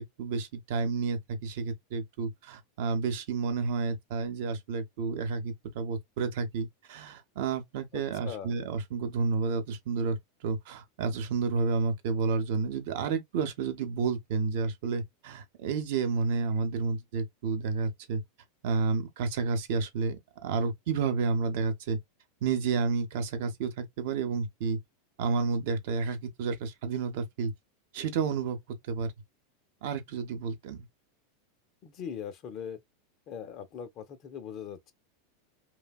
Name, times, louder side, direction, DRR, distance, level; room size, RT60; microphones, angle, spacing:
voice 1, 0.0-10.2 10.4-18.2 18.6-22.0 22.4-24.8 25.2-27.5 27.9-28.6 28.9-29.1 29.8-30.9, right 4 dB, 60° right, 0.6 m, -30 dB
voice 2, 7.9-8.6 31.8-32.8 33.3-34.9, left 8 dB, 40° left, 0.5 m, -40 dB
2.7 x 2.1 x 2.2 m
figure-of-eight pair, 90°, 0 cm